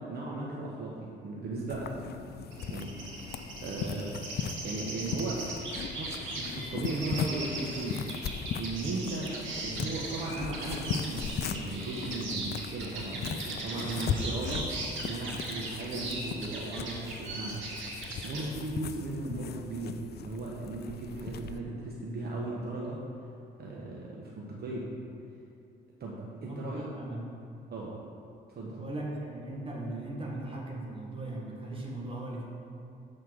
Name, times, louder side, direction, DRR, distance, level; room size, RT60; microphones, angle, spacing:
voice 1, 0.0-3.0 3.6-4.1 4.6-5.4 5.8-8.0 8.6-14.7 15.0-17.7 18.1-23.0 23.6-24.9 26.0-26.9 27.7-28.0 28.5-28.7, right 2 dB, 50° right, -3 dB, 1.1 m, -37 dB
sound 1, 1.7-21.6, left 7 dB, 55° left, 0.4 m, -38 dB
sound 2, 2.5-18.5, right 2 dB, 75° right, 2.0 m, -39 dB
voice 2, 26.3-27.3 28.6-32.4, right 2 dB, 25° right, -3 dB, 1.8 m, -38 dB
7.2 x 4.4 x 6.4 m, 2.7 s
cardioid pair, 90°, 20 cm